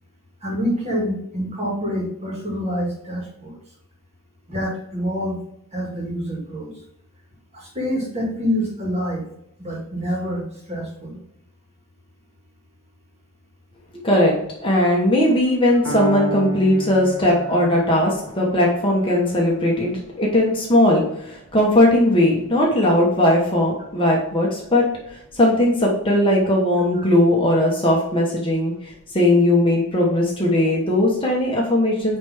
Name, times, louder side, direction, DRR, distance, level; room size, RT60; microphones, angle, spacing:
voice 1, 0.4-3.6 4.5-5.4 5.7-6.7 7.5-9.3 9.6-11.2, equal, 30° right, -2 dB, 2.0 m, -26 dB
voice 2, 14.0-14.3 14.6-24.9 25.3-32.2, left 1 dB, 25° left, -2 dB, 1.2 m, -18 dB
Piano, 15.9-23.8, right 4 dB, 80° right, 1.5 m, -35 dB
8.9 x 3.4 x 3.5 m, 0.76 s
head